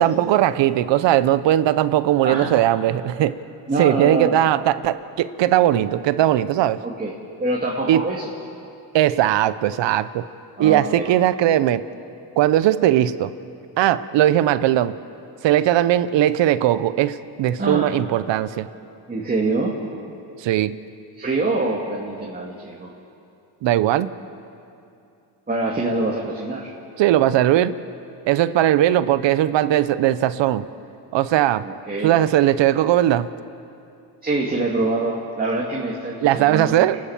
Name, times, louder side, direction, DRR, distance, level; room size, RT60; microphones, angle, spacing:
voice 1, 0.0-3.4 3.8-6.8 7.9-8.1 8.9-10.2 10.6-11.8 12.4-13.3 13.8-14.9 15.4-18.7 20.4-20.8 23.6-24.1 27.0-27.8 28.3-30.7 31.1-31.7 32.0-33.3 36.2-37.0, right 12 dB, 70° right, 15 dB, 0.9 m, -19 dB
voice 2, 3.7-4.3 6.8-7.1 7.4-8.2 10.6-11.1 17.6-17.9 19.1-19.8 21.2-22.9 25.5-26.7 31.6-32.2 34.2-36.9, right 2 dB, 20° right, -3 dB, 2.5 m, -25 dB
29.5 x 12.5 x 7.4 m, 2.6 s
cardioid pair, 100°, 45 cm